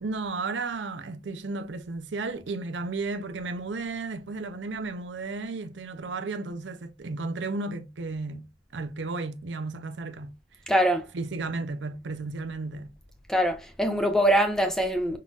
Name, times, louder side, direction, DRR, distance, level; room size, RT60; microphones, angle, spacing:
voice 1, 0.0-8.5 8.7-10.3 11.1-12.9, right 3 dB, 90° right, 0.6 m, -33 dB
voice 2, 10.7-11.0 13.3-15.2, equal, 5° left, 0.7 m, -23 dB
5.5 x 3.7 x 2.4 m
head